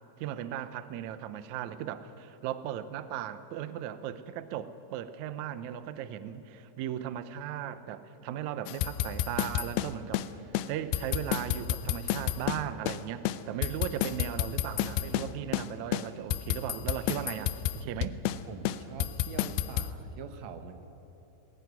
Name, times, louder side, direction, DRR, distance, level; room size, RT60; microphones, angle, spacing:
voice 1, 0.2-10.4 10.7-18.2, right 10 dB, 90° right, 12 dB, 1.6 m, -37 dB
sound 1, 8.7-10.3 10.5-10.7 10.9-13.0 13.2-15.3 15.5-15.7 15.9-18.4 18.6-19.9, left 12 dB, 85° left, 2.6 m, -30 dB
voice 2, 18.5-20.8, right 6 dB, 65° right, 8 dB, 1.8 m, -44 dB
20.0 x 19.0 x 9.4 m, 2.9 s
omnidirectional pair, 4.5 m